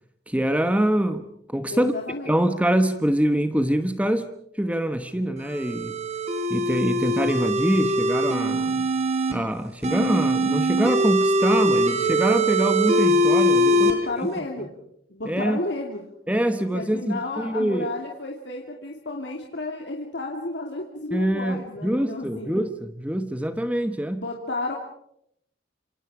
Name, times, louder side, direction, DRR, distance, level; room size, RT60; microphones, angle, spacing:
voice 1, 0.3-1.9 2.3-4.3 4.5-6.0 6.5-8.9 9.3-13.9 14.2-14.3 15.3-15.6 16.3-17.9 21.1-24.2, right 1 dB, 10° right, 9 dB, 1.1 m, -24 dB
voice 2, 1.7-2.3 13.7-14.8 15.1-16.0 16.7-22.6 24.1-24.8, left 2 dB, 90° left, 1 dB, 2.7 m, -32 dB
sound 1, 5.4-9.3 9.8-13.9, right 1 dB, 40° right, 3.8 m, -22 dB
28.0 x 27.0 x 4.9 m, 0.73 s
head